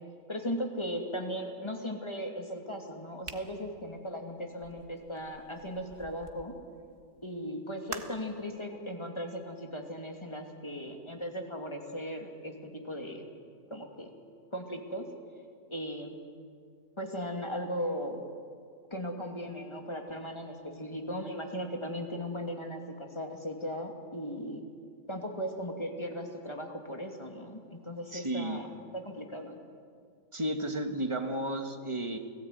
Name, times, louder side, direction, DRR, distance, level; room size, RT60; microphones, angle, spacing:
voice 1, 0.3-6.5 7.2-13.2 13.7-14.1 14.5-15.0 15.7-16.2 17.0-18.2 18.9-24.6 25.1-29.6, equal, 20° left, 3 dB, 2.7 m, -37 dB
sound 1, 3.2-6.5 7.9-8.4, right 4 dB, 40° right, 1.6 m, -46 dB
voice 2, 28.1-28.6 30.3-32.2, right 1 dB, 20° right, 6 dB, 1.6 m, -33 dB
29.5 x 18.0 x 9.4 m, 2.2 s
omnidirectional pair, 1.5 m